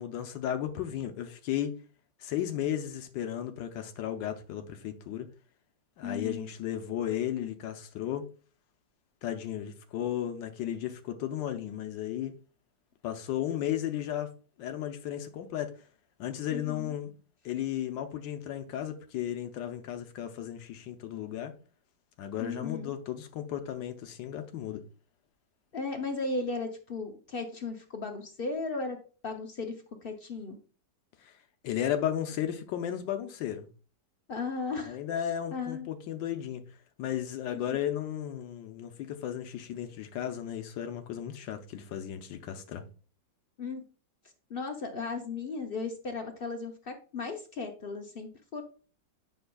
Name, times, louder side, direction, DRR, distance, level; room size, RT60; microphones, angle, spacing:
voice 1, 0.0-1.7 2.2-5.3 6.0-8.2 9.2-12.3 13.0-14.3 14.6-15.7 16.2-17.1 17.4-21.5 22.2-24.8 31.2-31.3 31.6-33.7 34.9-36.6 37.0-42.8, left 10 dB, 90° left, 1.4 m, -34 dB
voice 2, 6.0-6.5 16.5-16.9 22.4-22.9 25.7-29.0 29.2-30.6 34.3-35.0 35.5-35.9 43.6-43.8 44.5-48.6, left 4 dB, 60° left, 0.5 m, -36 dB
7.9 x 5.9 x 2.3 m
omnidirectional pair, 1.9 m